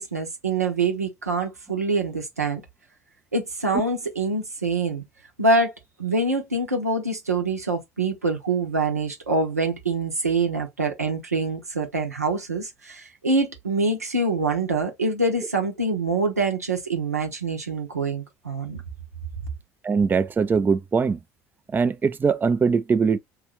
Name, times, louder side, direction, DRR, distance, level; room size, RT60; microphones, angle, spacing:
voice 1, 0.0-2.6 3.3-5.0 5.4-5.7 6.0-18.8, right 3 dB, 90° right, 0.9 m, -25 dB
voice 2, 19.8-21.2 21.7-23.2, right 5 dB, 25° right, 0.5 m, -21 dB
3.2 x 2.4 x 3.2 m
figure-of-eight pair, 60°, 8 cm